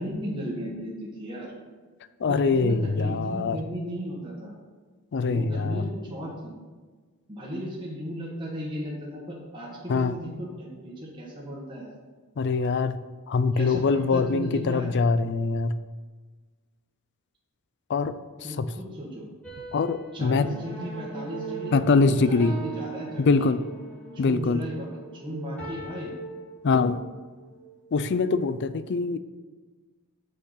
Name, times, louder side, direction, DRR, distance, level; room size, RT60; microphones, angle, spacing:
voice 1, 0.0-1.5 2.3-4.5 5.2-6.5 7.3-11.9 13.5-14.9 18.4-19.2 20.1-23.5 24.1-26.1, equal, 20° right, -5 dB, 1.4 m, -35 dB
voice 2, 2.2-3.6 5.1-5.8 9.9-10.2 12.4-13.0 13.3-15.8 17.9-18.1 18.6-18.7 19.7-20.5 21.7-22.5 23.2-23.6 24.2-24.6 26.6-27.0 27.9-29.2, left 4 dB, 50° left, 13 dB, 0.4 m, -23 dB
sound 1, 19.4-21.8 22.4-23.9 25.6-26.2, right 3 dB, 5° left, 2.4 m, -41 dB
sound 2, 20.4-28.1, right 5 dB, 25° left, 2.0 m, -42 dB
6.4 x 5.8 x 5.7 m, 1.4 s
head